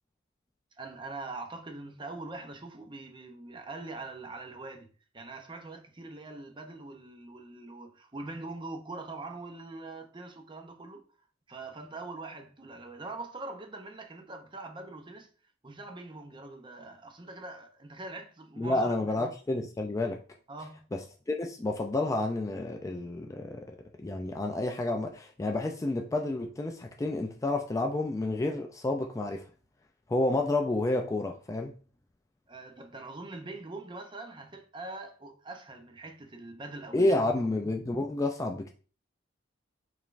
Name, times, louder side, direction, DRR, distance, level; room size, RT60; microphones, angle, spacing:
voice 1, 0.8-4.9 5.1-11.0 11.5-15.3 15.6-19.0 20.5-20.9 32.5-37.2, right 2 dB, 25° right, 0.6 m, -43 dB
voice 2, 18.6-20.2 20.9-29.5 30.1-31.7 36.9-38.7, left 2 dB, 15° left, 0.3 m, -30 dB
4.9 x 3.4 x 2.5 m
head